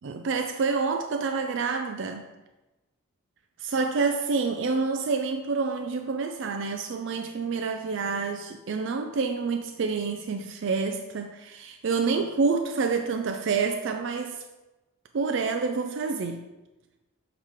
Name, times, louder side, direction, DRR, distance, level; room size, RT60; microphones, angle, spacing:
voice 1, 0.0-2.2 3.6-14.4 15.1-16.5, right 4 dB, 55° right, 5 dB, 0.4 m, -28 dB
6.4 x 5.8 x 3.6 m, 1.1 s
head